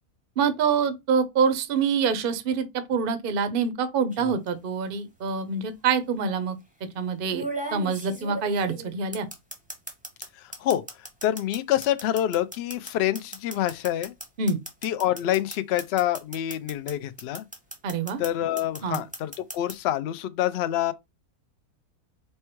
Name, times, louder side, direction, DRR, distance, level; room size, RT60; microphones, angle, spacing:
voice 1, 0.4-6.6 7.0-7.4 7.7-9.3 14.4-14.6 17.8-18.2 18.8-19.0, right 5 dB, 50° right, 0.6 m, -25 dB
sound 1, 4.1-4.5 5.7-5.8 7.3-10.3 10.5-16.9 17.2-18.3 18.6-19.7, right 1 dB, 10° right, 0.6 m, -36 dB
voice 2, 10.4-10.8 11.2-14.1 14.8-17.4 18.2-20.9, left 12 dB, 70° left, 0.6 m, -26 dB
4.4 x 2.2 x 4.5 m
omnidirectional pair, 1.6 m